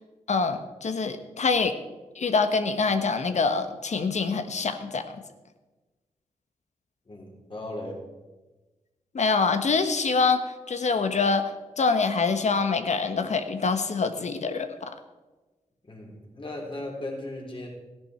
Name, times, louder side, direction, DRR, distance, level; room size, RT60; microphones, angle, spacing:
voice 1, 0.3-1.7 2.1-5.2 9.1-11.5 11.8-14.9, left 4 dB, 60° left, 8 dB, 1.2 m, -25 dB
voice 2, 7.1-8.0 15.8-17.7, left 1 dB, 40° left, -1 dB, 4.1 m, -37 dB
14.5 x 10.5 x 4.5 m, 1.2 s
cardioid pair, 60°, 13 cm